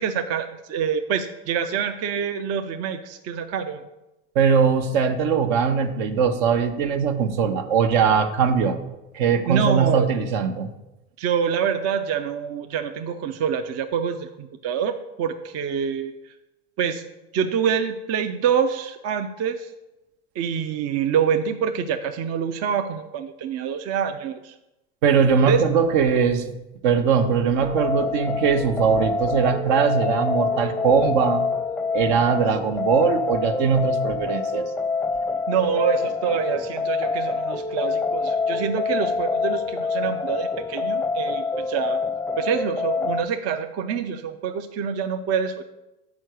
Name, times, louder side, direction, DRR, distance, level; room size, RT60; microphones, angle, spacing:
voice 1, 0.0-3.8 9.5-10.1 11.2-16.1 16.8-17.0 17.3-19.7 20.4-24.5 25.4-25.6 35.5-42.0 42.4-45.6, right 7 dB, 50° right, 7 dB, 0.6 m, -26 dB
voice 2, 4.3-8.8 9.1-10.7 25.0-26.5 26.8-31.4 31.9-34.7, right 6 dB, 70° right, 7 dB, 0.9 m, -21 dB
sound 1, 27.6-43.2, left 4 dB, 5° left, 0.6 m, -26 dB
6.3 x 4.7 x 6.3 m, 0.97 s
hypercardioid pair, 85°, 32 cm